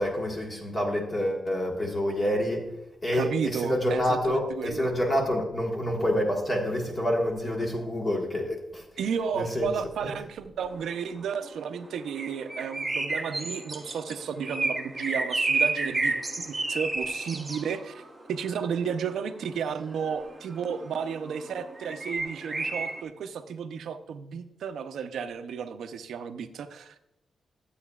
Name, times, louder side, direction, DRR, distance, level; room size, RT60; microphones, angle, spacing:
voice 1, 0.0-2.6 3.0-8.8 9.3-9.7 10.0-10.1, equal, 25° left, 0 dB, 1.4 m, -27 dB
voice 2, 3.1-4.9 9.0-18.0 18.3-27.0, right 7 dB, 80° right, 9 dB, 0.6 m, -33 dB
sound 1, 10.6-23.0, right 2 dB, 15° right, 1.0 m, -32 dB
12.0 x 8.3 x 2.3 m, 0.86 s
wide cardioid pair, 155°, 0 cm